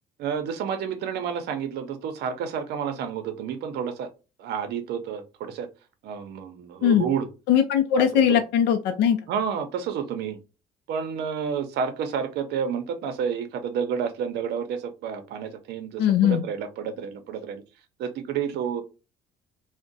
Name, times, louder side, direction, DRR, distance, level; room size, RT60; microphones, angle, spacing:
voice 1, 0.2-4.1 4.4-5.7 6.0-7.3 8.0-8.4 9.3-10.4 10.9-17.6 18.0-18.8, right 7 dB, 75° right, 8 dB, 0.6 m, -30 dB
voice 2, 7.5-9.2 16.0-16.4, left 9 dB, 85° left, 7 dB, 0.4 m, -20 dB
2.5 x 2.1 x 3.8 m, 0.31 s
cardioid pair, 110°, 17 cm